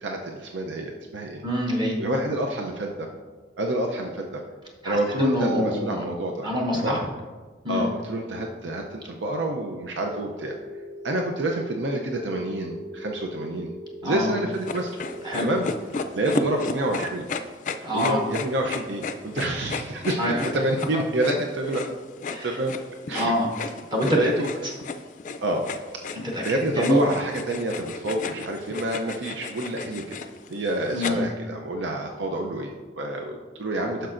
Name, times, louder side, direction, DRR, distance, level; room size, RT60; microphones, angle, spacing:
voice 1, 0.0-1.4 2.0-3.1 3.6-4.4 4.8-6.5 6.8-7.0 7.7-10.5 11.0-13.7 14.0-14.9 15.4-15.6 16.1-17.3 17.9-21.9 22.4-22.7 23.1-23.3 24.1-24.5 25.4-25.6 26.4-30.2 30.5-34.1, right 1 dB, 85° right, 2 dB, 0.6 m, -28 dB
voice 2, 1.4-2.0 4.8-6.0 6.4-7.1 7.6-7.9 14.0-14.3 15.2-15.5 17.8-18.2 20.2-20.4 22.3-22.6 23.1-23.5 23.9-24.2 26.1-27.0 30.9-31.3, left 1 dB, 25° right, -1 dB, 0.8 m, -25 dB
Telephone, 10.4-15.4, equal, 50° right, 1.4 m, -40 dB
sound 1, 14.6-31.1, left 4 dB, 45° left, 0.4 m, -34 dB
10.0 x 6.5 x 2.5 m, 1.4 s
head